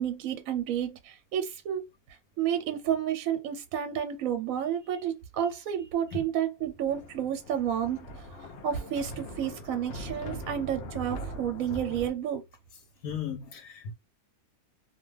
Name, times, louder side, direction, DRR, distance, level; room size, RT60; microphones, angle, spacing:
voice 1, 0.0-1.9 2.4-12.4, right 9 dB, 70° right, 1.0 m, -31 dB
Thunder, 6.6-12.1, equal, 65° left, 0.8 m, -41 dB
voice 2, 13.0-13.9, left 8 dB, 85° left, 1.1 m, -36 dB
2.5 x 2.3 x 3.1 m
omnidirectional pair, 1.6 m